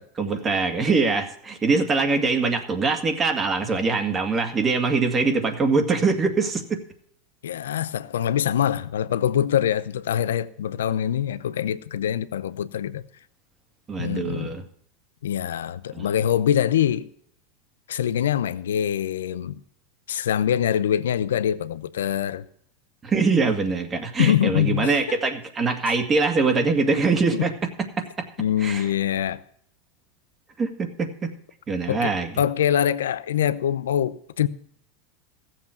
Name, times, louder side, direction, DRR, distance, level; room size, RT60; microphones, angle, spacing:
voice 1, 0.2-6.8 13.9-14.6 15.9-16.1 23.0-27.5 28.0-28.3 28.6-28.9 30.6-31.3 31.7-32.3, right 4 dB, 25° right, 2.1 m, -23 dB
voice 2, 7.4-13.0 14.0-14.5 15.2-17.1 17.9-19.6 20.1-22.5 24.2-24.9 27.3-27.4 28.4-29.4 31.9-34.5, left 10 dB, 85° left, 0.6 m, -24 dB
15.5 x 7.6 x 5.9 m
hypercardioid pair, 100°, 0 cm